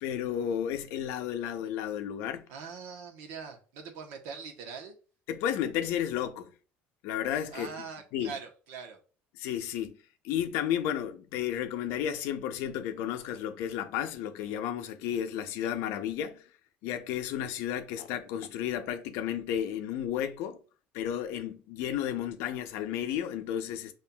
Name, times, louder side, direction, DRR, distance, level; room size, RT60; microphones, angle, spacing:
voice 1, 0.0-2.5 5.3-6.5 7.0-7.7 8.1-8.3 9.4-10.0 10.2-16.5 16.8-20.6 20.9-23.9, left 10 dB, 75° left, 0.6 m, -32 dB
voice 2, 2.5-5.0 7.5-9.0, right 5 dB, 80° right, 0.9 m, -42 dB
5.5 x 2.5 x 2.2 m
cardioid pair, 130°, 4 cm